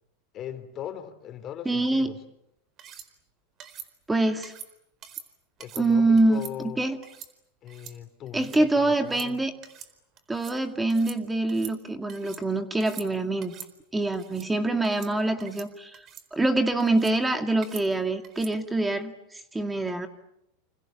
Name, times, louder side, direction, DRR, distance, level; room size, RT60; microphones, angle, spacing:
voice 1, 0.3-2.2 5.6-6.8 7.6-9.4, left 10 dB, 40° left, 9 dB, 3.8 m, -39 dB
voice 2, 1.7-2.1 4.1-4.5 5.8-7.0 8.3-9.5 10.3-13.5 13.9-20.1, right 2 dB, 10° right, 6 dB, 2.1 m, -25 dB
sound 1, 2.8-3.1 3.6-3.9 4.4-4.7 5.0-5.3 5.6-5.9 6.2-6.5 7.0-7.3 7.7-8.0 8.3-8.6 9.0-9.3 9.6-9.9 10.2-10.6 10.9-11.2 11.5-12.4 12.8-13.1 13.4-13.7 14.1-14.5 14.8-15.1 15.4-15.7 15.9-16.3 16.8-17.2 17.6-17.9 18.2-18.5, right 9 dB, 40° right, 4.4 m, -44 dB
29.0 x 28.5 x 7.2 m, 0.81 s
hypercardioid pair, 115°, 0 cm